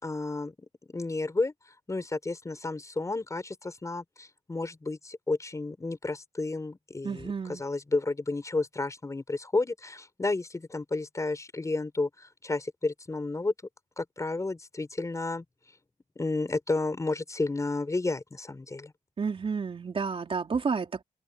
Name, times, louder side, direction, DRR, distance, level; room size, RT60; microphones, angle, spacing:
voice 1, 0.0-1.5 1.9-13.5 14.0-15.4 16.2-18.9, left 3 dB, 25° left, 4.6 m, -32 dB
voice 2, 7.0-7.6 19.2-21.0, right 5 dB, 40° right, 3.9 m, -31 dB
open air
wide cardioid pair, 120°, 14 cm